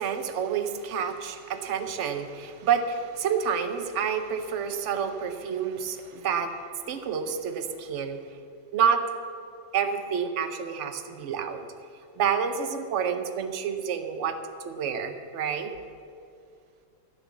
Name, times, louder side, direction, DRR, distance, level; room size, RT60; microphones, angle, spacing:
voice 1, 0.0-6.6 6.9-8.2 8.7-9.0 9.7-11.7 12.2-14.4 14.6-15.7, right 7 dB, 60° right, 8 dB, 0.7 m, -28 dB
12.0 x 7.2 x 7.2 m, 2.4 s
omnidirectional pair, 2.1 m